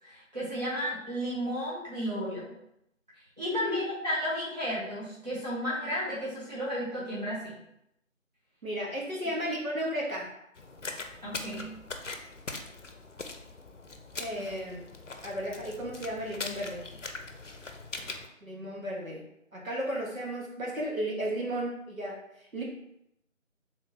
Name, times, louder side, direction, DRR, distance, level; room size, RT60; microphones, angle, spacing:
voice 1, 0.0-2.5 3.4-7.6 9.1-9.2 11.2-11.8, equal, 30° right, -9 dB, 1.4 m, -33 dB
voice 2, 8.6-10.3 14.2-14.8 15.2-16.9 18.4-19.2 19.5-22.2 22.5-22.6, equal, 80° right, -3 dB, 1.5 m, -34 dB
sound 1, 10.6-18.3, left 3 dB, 65° left, 0.6 m, -41 dB
4.7 x 3.6 x 2.8 m, 0.79 s
figure-of-eight pair, 170°, 40 cm